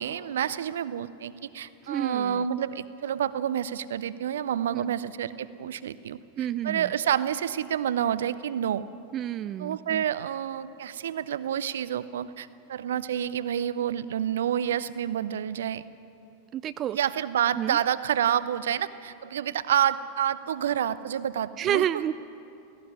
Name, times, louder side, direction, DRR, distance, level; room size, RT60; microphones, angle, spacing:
voice 1, 0.0-6.2 6.6-8.8 9.6-15.9 16.9-21.8, right 9 dB, 60° right, 15 dB, 0.7 m, -28 dB
voice 2, 1.8-2.4 4.7-5.0 6.4-6.9 9.1-10.0 16.5-17.0 17.6-17.8 21.6-22.1, right 10 dB, 30° right, 13 dB, 0.4 m, -30 dB
17.5 x 16.5 x 9.9 m, 2.7 s
figure-of-eight pair, 90°, 0 cm